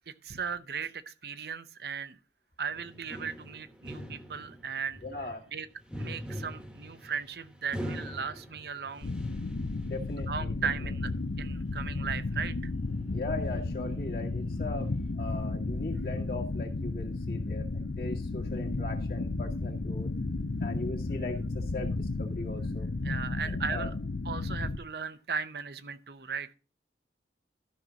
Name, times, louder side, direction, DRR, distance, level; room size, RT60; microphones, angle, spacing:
voice 1, 0.1-2.2 2.6-5.0 5.5-5.7 6.0-9.1 10.3-11.1 11.4-12.7 23.0-23.9 24.2-26.5, right 6 dB, 65° right, 0.7 m, -37 dB
sound 1, 2.7-10.5 10.8-11.1 12.1-15.1, equal, 5° right, 1.1 m, -44 dB
voice 2, 5.0-5.5 9.8-10.9 13.1-20.1 20.6-22.9 23.4-23.9, left 2 dB, 55° left, 2.0 m, -39 dB
sound 2, 9.0-24.8, left 3 dB, 75° left, 0.7 m, -33 dB
13.0 x 6.1 x 3.9 m
head